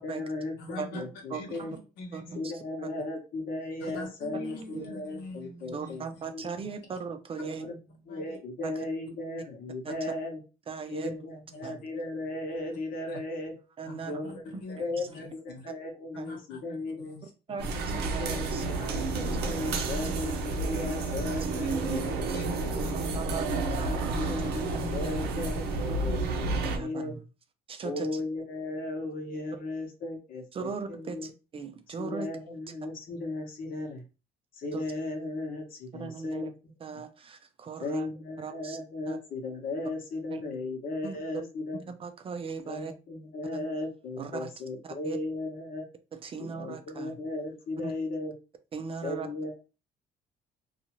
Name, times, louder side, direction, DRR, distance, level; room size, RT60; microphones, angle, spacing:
voice 1, 0.0-1.7 2.3-4.5 4.8-6.5 7.4-10.4 10.9-13.5 14.1-17.1 18.2-22.0 22.5-22.7 23.5-27.1 27.8-31.3 32.0-34.0 34.6-36.5 37.8-41.8 42.6-45.8 46.4-48.3 49.0-49.6, left 2 dB, 55° left, 3 dB, 1.0 m, -36 dB
voice 2, 0.6-1.0 1.3-2.4 3.8-6.3 6.6-6.7 7.4-7.5 8.1-8.4 9.9-10.0 10.8-10.9 11.5-11.7 13.1-13.2 13.8-15.7 16.1-17.7 18.6-19.0 19.9-20.1 20.7-20.9 21.6-23.1 24.2-24.5, left 3 dB, 80° left, 2 dB, 1.0 m, -45 dB
voice 3, 1.3-1.7 2.1-2.6 4.7-4.9 5.7-7.7 8.6-8.7 9.8-10.1 10.7-11.1 11.6-11.8 13.8-14.9 16.2-16.3 17.5-18.6 19.3-19.7 21.7-21.8 22.9-24.1 25.0-25.2 25.9-26.0 26.5-27.2 27.7-28.2 30.5-32.3 34.7-34.8 35.9-36.5 36.8-38.1 38.4-38.8 39.1-39.2 40.3-40.4 41.0-41.2 41.7-42.9 43.5-43.7 44.2-44.5 44.8-45.2 46.1-47.2 47.8-47.9 48.7-49.3, right 5 dB, 35° right, 8 dB, 0.4 m, -39 dB
sound 1, 17.6-26.8, right 3 dB, 75° right, 0.6 m, -30 dB
2.6 x 2.4 x 3.0 m, 0.31 s
cardioid pair, 110°, 17 cm